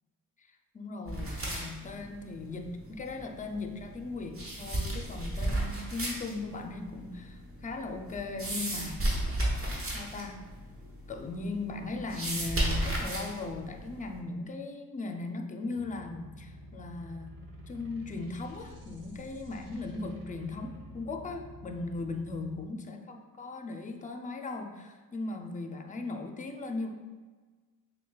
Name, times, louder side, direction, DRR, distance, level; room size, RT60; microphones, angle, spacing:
voice 1, 0.4-9.1 9.9-10.4 11.1-20.7 20.9-26.9, left 3 dB, 20° left, 4 dB, 0.4 m, -38 dB
sound 1, 1.1-14.2, right 1 dB, 40° right, 1.0 m, -35 dB
sound 2, 15.8-22.6, right 1 dB, 70° right, 0.7 m, -49 dB
6.1 x 2.2 x 2.3 m, 1.4 s
cardioid pair, 75°, 36 cm